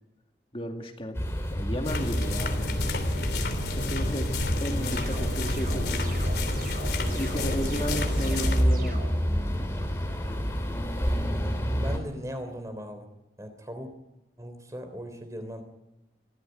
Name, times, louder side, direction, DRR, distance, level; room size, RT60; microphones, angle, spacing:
voice 1, 0.5-1.2 1.5-2.8 3.7-4.3 4.6-6.3 7.2-9.0 10.3-10.5, equal, 30° left, 3 dB, 2.2 m, -34 dB
sound 1, 1.1-12.0, equal, 15° left, 3.1 m, -29 dB
sound 2, 1.8-8.6, left 2 dB, 65° left, 3.3 m, -30 dB
sound 3, 4.7-9.1, right 2 dB, 50° right, 5.8 m, -42 dB
voice 2, 11.7-13.1 13.4-13.9 14.4-15.6, equal, 20° right, 7 dB, 3.4 m, -39 dB
22.5 x 15.5 x 9.2 m, 1.0 s
head